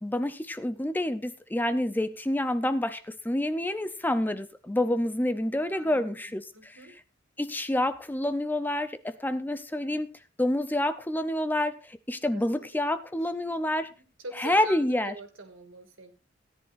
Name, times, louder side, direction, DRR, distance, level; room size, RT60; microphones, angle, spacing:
voice 1, 0.0-6.7 7.4-10.1 10.4-13.9 14.4-15.1, left 1 dB, 10° left, 0.5 m, -28 dB
voice 2, 5.7-7.0 12.3-12.7 13.2-13.7 14.2-16.1, right 2 dB, 90° right, 2.2 m, -44 dB
17.0 x 10.5 x 2.6 m
head